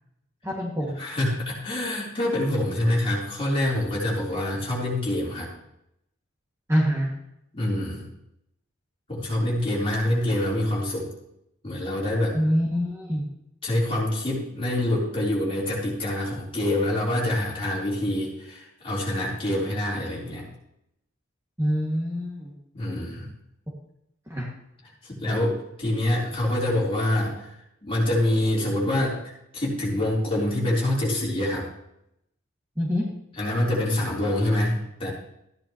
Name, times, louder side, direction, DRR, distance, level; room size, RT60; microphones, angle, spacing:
voice 1, 0.4-1.0 6.7-7.1 12.3-13.2 21.6-22.5 24.3-24.5 32.8-33.0, equal, 15° right, -5 dB, 2.1 m, -25 dB
voice 2, 1.0-5.5 7.5-8.1 9.1-11.1 11.6-12.4 13.6-20.5 22.7-23.3 25.0-27.5 27.8-31.7 33.4-35.1, left 1 dB, 25° left, -6 dB, 3.8 m, -26 dB
14.0 x 10.5 x 3.1 m, 0.79 s
head